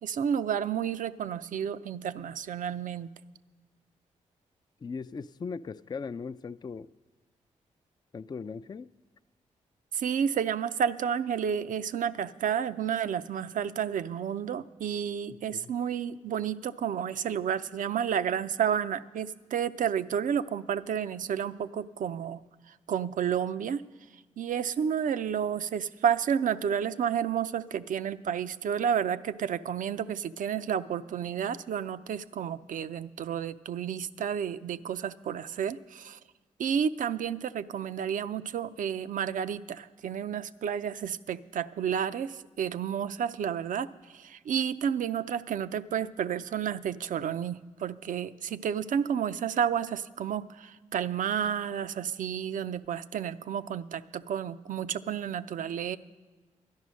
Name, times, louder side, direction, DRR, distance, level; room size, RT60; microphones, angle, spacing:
voice 1, 0.0-3.1 9.9-22.4 22.7-23.8 24.4-36.2 36.6-56.0, right 8 dB, 70° right, 0.5 m, -31 dB
voice 2, 4.8-6.9 8.1-8.9 15.5-15.7, left 5 dB, 30° left, 0.4 m, -38 dB
12.0 x 10.5 x 6.3 m
supercardioid pair, 40°, 14 cm